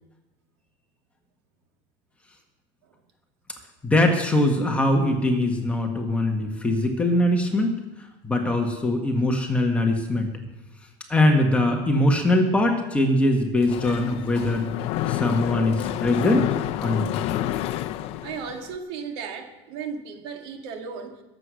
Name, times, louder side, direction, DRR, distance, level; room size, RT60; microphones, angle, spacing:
voice 1, 3.8-7.7 8.2-10.3 11.1-14.7 15.1-16.5 16.8-17.1, left 1 dB, 10° left, 2 dB, 1.6 m, -22 dB
Mechanisms, 13.6-18.8, left 13 dB, 50° left, 0.6 m, -29 dB
voice 2, 18.2-21.2, right 6 dB, 85° right, 4 dB, 2.2 m, -35 dB
21.0 x 8.0 x 6.3 m, 1.0 s
cardioid pair, 155°, 13 cm